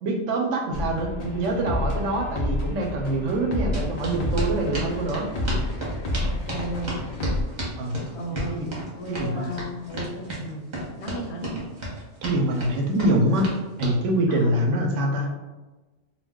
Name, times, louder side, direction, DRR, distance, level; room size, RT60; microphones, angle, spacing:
voice 1, 0.0-5.3 7.8-8.0 8.3-8.7 9.1-9.5 12.2-13.5 13.8-15.3, right 1 dB, 75° right, 1 dB, 0.9 m, -25 dB
sound 1, 0.7-7.4, left 1 dB, 85° left, 0.3 m, -29 dB
sound 2, 3.7-14.0, right 1 dB, 40° right, 0.8 m, -33 dB
voice 2, 6.2-6.9 8.1-8.6 9.0-10.7 11.0-11.6 14.3-14.6, equal, 70° left, 0 dB, 0.8 m, -34 dB
2.3 x 2.2 x 3.5 m, 1.1 s
omnidirectional pair, 1.3 m